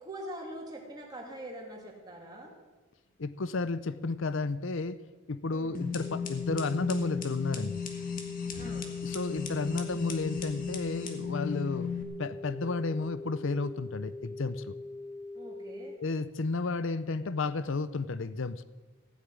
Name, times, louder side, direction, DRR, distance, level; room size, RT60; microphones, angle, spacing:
voice 1, 0.0-2.5 5.5-5.8 8.6-8.9 15.3-15.9, right 1 dB, 20° right, -1 dB, 2.9 m, -43 dB
voice 2, 3.2-5.0 5.3-7.8 9.0-11.9 12.2-14.7 16.0-18.6, left 3 dB, 60° left, 15 dB, 0.6 m, -32 dB
sound 1, 5.7-12.0, left 7 dB, 40° left, 1.6 m, -36 dB
sound 2, 6.0-16.0, left 2 dB, 5° left, 0.4 m, -42 dB
16.5 x 7.3 x 9.5 m, 1.3 s
head